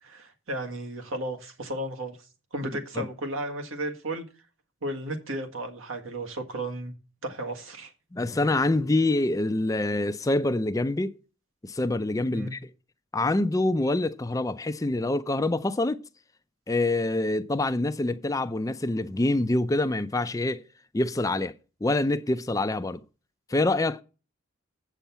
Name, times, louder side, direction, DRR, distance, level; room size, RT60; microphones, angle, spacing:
voice 1, 0.0-2.2 2.5-4.2 4.8-6.9 7.2-7.9 12.3-12.5, right 1 dB, 70° right, 1.7 m, -34 dB
voice 2, 8.1-11.1 11.6-12.6 13.1-16.0 16.7-20.6 20.9-21.5 21.8-23.0 23.5-24.0, left 2 dB, 15° left, 0.4 m, -26 dB
8.3 x 6.9 x 5.7 m
head